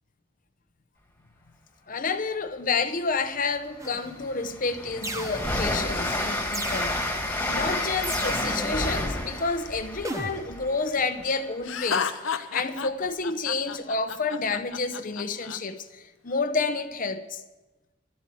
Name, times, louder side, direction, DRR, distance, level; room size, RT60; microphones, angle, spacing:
voice 1, 1.9-17.4, left 4 dB, 45° left, 0.8 m, -30 dB
Train, 3.3-3.4 3.8-11.5, left 1 dB, 10° left, 1.9 m, -30 dB
sound 1, 3.8-4.3 5.0-5.8 6.5-7.3 8.0-8.8 10.0-10.7, right 2 dB, 15° right, 1.0 m, -36 dB
Laughter, 11.6-15.6, left 6 dB, 80° left, 0.8 m, -31 dB
12.5 x 8.5 x 9.9 m
head